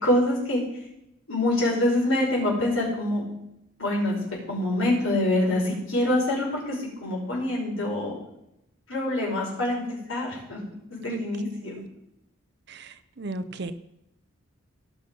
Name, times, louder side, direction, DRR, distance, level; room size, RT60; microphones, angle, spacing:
voice 1, 0.0-0.6 1.3-3.2 3.8-4.2 4.5-8.1 8.9-10.6 10.9-11.7, left 1 dB, 80° left, -3 dB, 5.2 m, -25 dB
voice 2, 12.7-13.7, right 2 dB, 50° right, 12 dB, 0.6 m, -35 dB
17.5 x 5.9 x 5.4 m, 0.83 s
head